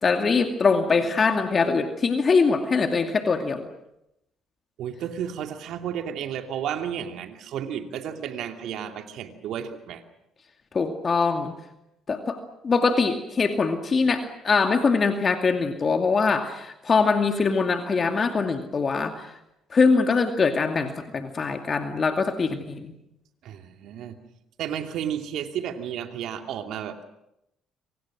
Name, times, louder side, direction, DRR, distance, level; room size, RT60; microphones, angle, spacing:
voice 1, 0.0-3.7 10.7-11.5 12.1-19.3 19.7-22.9, left 4 dB, 40° left, 6 dB, 2.5 m, -23 dB
voice 2, 4.8-10.0 23.4-24.1 24.6-27.0, right 9 dB, 65° right, 6 dB, 2.7 m, -32 dB
27.5 x 25.0 x 6.3 m, 0.82 s
hypercardioid pair, 55°, 0 cm